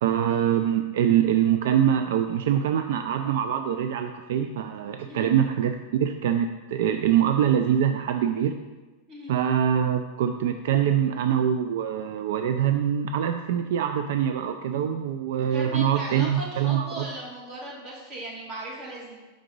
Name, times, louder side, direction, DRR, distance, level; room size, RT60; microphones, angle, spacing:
voice 1, 0.0-8.5 9.3-17.1, right 9 dB, 65° right, 7 dB, 0.3 m, -24 dB
voice 2, 15.5-19.2, right 1 dB, 30° right, -3 dB, 1.5 m, -38 dB
5.0 x 3.8 x 5.2 m, 1.2 s
supercardioid pair, 165°, 0 cm